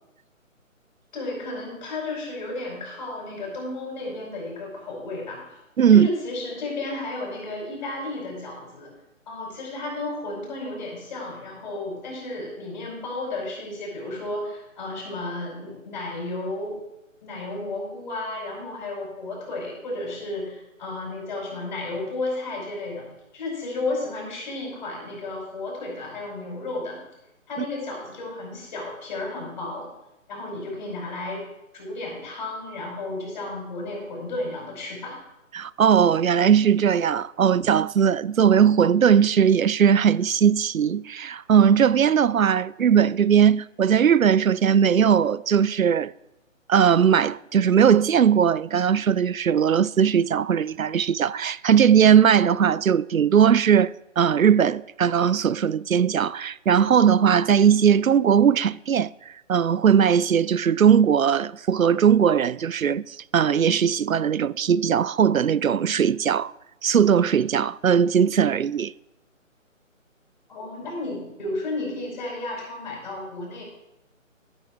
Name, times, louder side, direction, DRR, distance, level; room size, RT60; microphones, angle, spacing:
voice 1, 1.1-5.6 5.9-8.9 9.3-16.8 17.2-23.1 23.3-27.0 27.5-29.9 30.3-31.5 31.7-35.2 70.5-73.6, left 2 dB, 35° left, 5.3 m, -33 dB
voice 2, 5.8-6.1 35.5-46.1 46.7-59.1 59.5-66.5 66.8-68.9, right 8 dB, 90° right, 0.5 m, -19 dB
15.0 x 7.5 x 4.6 m
figure-of-eight pair, 150°, 40 cm